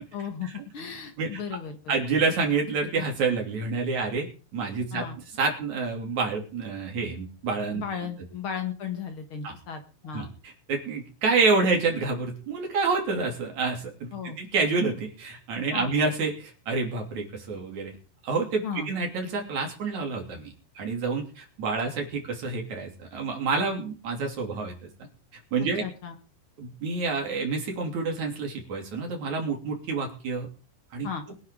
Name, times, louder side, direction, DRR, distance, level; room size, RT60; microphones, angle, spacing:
voice 1, 0.1-0.5 0.7-1.8 4.9-5.2 7.7-10.3 14.1-14.4 15.7-15.9 18.6-18.9 25.8-26.1 31.0-31.2, left 7 dB, 60° left, 5 dB, 1.4 m, -35 dB
voice 2, 1.9-5.1 5.4-7.8 9.4-9.5 10.1-18.0 18.2-24.8 25.5-25.8 26.6-30.5 30.9-31.1, right 4 dB, 45° right, 1 dB, 4.0 m, -28 dB
23.5 x 9.7 x 3.8 m, 0.37 s
omnidirectional pair, 4.8 m